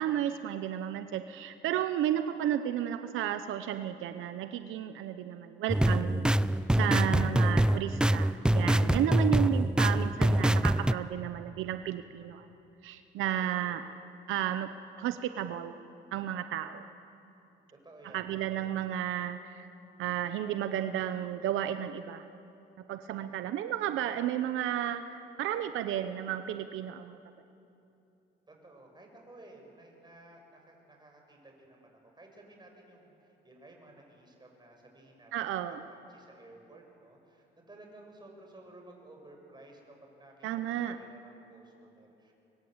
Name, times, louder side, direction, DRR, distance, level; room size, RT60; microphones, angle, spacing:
voice 1, 0.0-6.3 6.8-12.5 12.8-13.8 14.3-15.8 16.1-16.8 18.1-19.7 20.0-22.2 22.9-27.2 35.3-35.8 40.4-41.0, right 11 dB, 90° right, 9 dB, 0.9 m, -33 dB
sound 1, 5.7-10.9, right 1 dB, 5° right, 0.5 m, -25 dB
voice 2, 13.2-13.9 17.7-18.9 28.5-42.3, right 2 dB, 20° right, 1 dB, 6.8 m, -55 dB
26.0 x 22.5 x 8.0 m, 2.8 s
cardioid pair, 90°, 20 cm